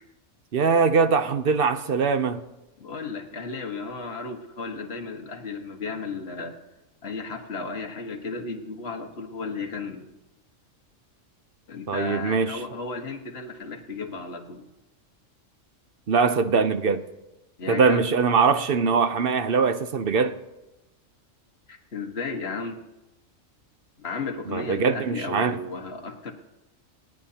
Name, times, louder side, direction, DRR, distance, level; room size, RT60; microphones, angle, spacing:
voice 1, 0.5-2.4 11.9-12.6 16.1-17.0 17.7-20.3 24.5-25.6, right 5 dB, 55° right, 0.8 m, -22 dB
voice 2, 2.8-6.6 7.0-10.1 11.7-14.6 17.6-18.1 21.7-22.8 24.0-26.3, left 4 dB, 50° left, 1.6 m, -34 dB
28.0 x 9.5 x 2.8 m
omnidirectional pair, 1.4 m